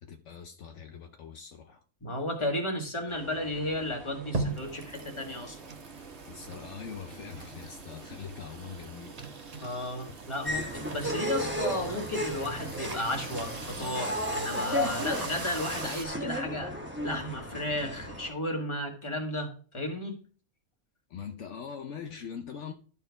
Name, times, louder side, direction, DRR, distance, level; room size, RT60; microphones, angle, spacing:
voice 1, 0.0-1.8 6.3-9.2 21.1-22.7, left 7 dB, 70° left, 1.0 m, -42 dB
voice 2, 2.0-5.6 9.6-20.2, left 1 dB, 25° left, 1.8 m, -34 dB
sound 1, 3.1-13.9, right 4 dB, 60° right, 1.5 m, -48 dB
sound 2, 4.3-16.0, right 3 dB, 35° right, 1.0 m, -41 dB
sound 3, 10.4-18.3, equal, 10° right, 1.1 m, -34 dB
12.5 x 4.4 x 4.6 m
omnidirectional pair, 1.3 m